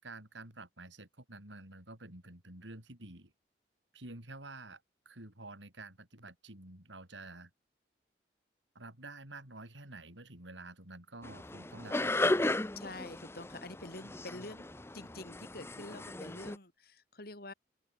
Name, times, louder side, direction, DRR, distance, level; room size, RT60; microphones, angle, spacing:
voice 1, 0.0-3.3 3.9-7.5 8.7-12.6, right 2 dB, 85° right, 5.6 m, -49 dB
sound 1, 11.2-16.6, left 2 dB, 15° left, 0.7 m, -35 dB
voice 2, 12.8-14.7 14.9-17.5, left 2 dB, 55° left, 4.7 m, -47 dB
open air
head